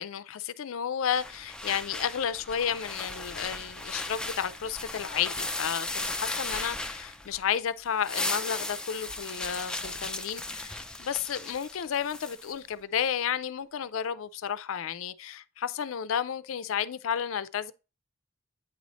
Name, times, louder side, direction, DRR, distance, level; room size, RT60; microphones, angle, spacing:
voice 1, 0.0-17.7, left 8 dB, 80° left, 0.4 m, -32 dB
sound 1, 1.1-7.5 7.8-12.5, left 2 dB, 5° left, 0.3 m, -36 dB
8.8 x 3.1 x 4.1 m
head